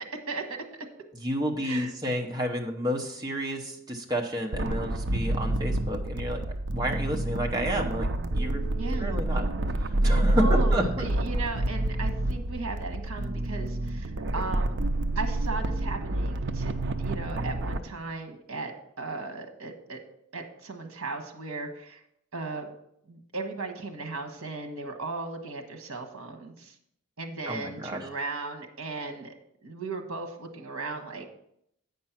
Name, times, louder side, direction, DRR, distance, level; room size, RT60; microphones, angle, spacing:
voice 1, 0.3-0.9 1.6-1.9 8.8-9.2 10.4-14.8 15.1-16.7 17.0-18.7 19.0-20.0 20.3-22.0 22.3-22.7 23.1-26.8 27.2-29.3 29.6-31.2, right 3 dB, 70° right, 5 dB, 1.2 m, -36 dB
voice 2, 1.2-6.4 6.7-8.1 8.3-8.7 9.0-9.4 9.8-11.1 27.5-28.0, equal, 20° right, 1 dB, 0.8 m, -30 dB
sound 1, 4.5-17.8, right 1 dB, 50° right, 0.5 m, -28 dB
8.6 x 5.4 x 5.8 m, 0.74 s
head